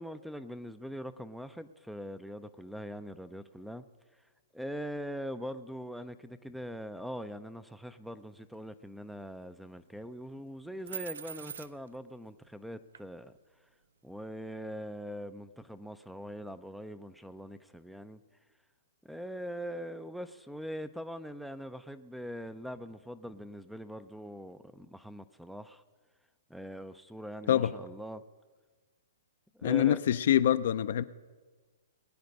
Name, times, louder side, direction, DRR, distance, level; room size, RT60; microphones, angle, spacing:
voice 1, 0.0-3.8 4.5-13.3 14.0-18.2 19.0-25.8 26.5-28.2 29.5-30.0, equal, ahead, 13 dB, 0.5 m, -42 dB
sound 1, 10.9-12.0 12.9-13.0, right 8 dB, 80° right, 0.5 m, -41 dB
voice 2, 29.6-31.0, left 11 dB, 65° left, 13 dB, 0.5 m, -25 dB
20.5 x 9.4 x 5.3 m, 1.4 s
hypercardioid pair, 140°, 0 cm